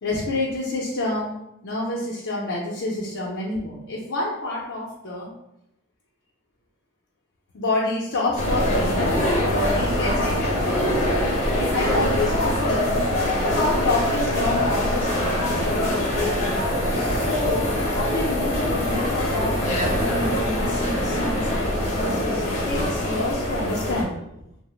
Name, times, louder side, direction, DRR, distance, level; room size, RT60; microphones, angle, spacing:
voice 1, 0.0-1.4 1.6-5.3 7.5-10.8 11.6-12.9 13.5-15.9 16.9-24.1, left 2 dB, 80° left, -5 dB, 0.5 m, -28 dB
sound 1, 8.4-24.0, left 1 dB, 35° left, 0.7 m, -23 dB
2.8 x 2.0 x 3.1 m, 0.84 s
head